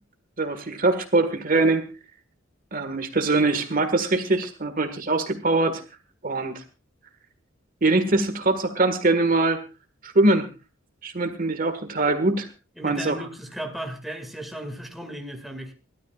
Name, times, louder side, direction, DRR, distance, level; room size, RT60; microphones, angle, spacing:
voice 1, 0.4-1.8 2.7-5.8 6.2-6.6 7.8-9.6 10.0-10.5 11.0-12.5 12.8-13.2, right 2 dB, 45° right, 8 dB, 1.7 m, -22 dB
voice 2, 12.8-15.7, right 1 dB, ahead, 3 dB, 2.1 m, -35 dB
28.5 x 13.0 x 2.4 m, 0.29 s
head